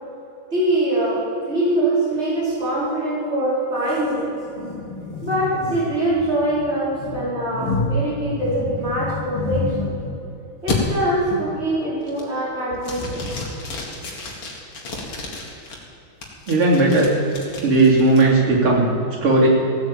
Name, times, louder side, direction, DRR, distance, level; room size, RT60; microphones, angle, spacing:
voice 1, 0.5-4.3 5.2-9.9 10.6-13.2, right 1 dB, 30° right, -7 dB, 5.0 m, -23 dB
sound 1, 3.9-10.2 10.7-10.8 11.3-11.6 12.0-12.5 12.8-15.8 16.2-18.2, left 3 dB, 90° left, 3.3 m, -30 dB
voice 2, 16.5-17.1 17.6-18.9 19.2-19.5, right 2 dB, 85° right, -4 dB, 4.3 m, -16 dB
16.0 x 9.3 x 8.8 m, 2.9 s
omnidirectional pair, 2.4 m